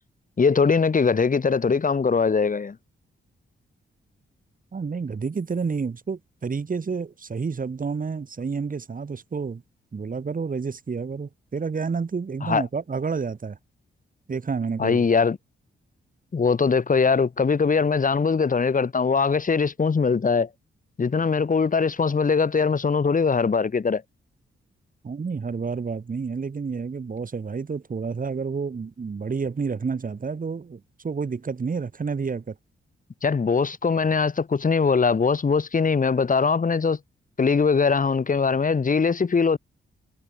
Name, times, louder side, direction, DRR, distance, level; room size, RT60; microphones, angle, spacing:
voice 1, 0.4-2.8 12.4-12.6 14.8-15.4 16.3-20.5 21.0-24.0 33.2-37.0 37.4-39.6, left 5 dB, 40° left, 4.4 m, -21 dB
voice 2, 4.7-9.6 9.9-13.6 14.3-15.1 25.0-32.5, right 5 dB, 40° right, 6.8 m, -29 dB
cardioid pair, 100°, 21 cm